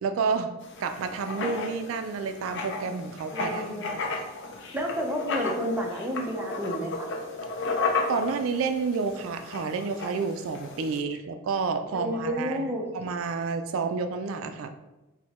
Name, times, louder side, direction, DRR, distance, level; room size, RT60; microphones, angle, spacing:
voice 1, 0.0-0.5 0.8-3.6 7.6-7.8 8.1-12.6 12.9-14.7, right 5 dB, 70° right, 8 dB, 0.3 m, -30 dB
Writing, 0.6-11.0, left 3 dB, 60° left, 0.5 m, -34 dB
voice 2, 3.3-4.0 4.7-7.1 11.9-12.9, equal, 10° right, -1 dB, 0.6 m, -30 dB
4.6 x 2.1 x 4.1 m, 1.0 s
head